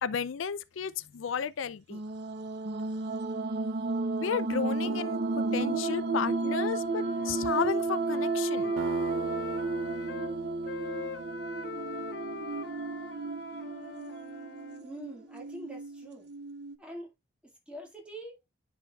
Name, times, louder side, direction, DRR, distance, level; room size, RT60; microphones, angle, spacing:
voice 1, 0.0-2.0 4.2-5.2 5.5-8.7, left 7 dB, 80° left, 0.4 m, -33 dB
sound 1, 1.9-16.8, right 3 dB, 55° right, 0.8 m, -33 dB
Wind instrument woodwind instrument, 6.8-10.3 10.6-14.8, left 4 dB, 55° left, 0.9 m, -43 dB
sound 2, 8.8-12.6, right 7 dB, 80° right, 0.3 m, -41 dB
voice 2, 14.8-16.3 16.8-17.1 17.4-18.4, right 1 dB, 5° right, 2.1 m, -44 dB
10.0 x 4.8 x 2.4 m
head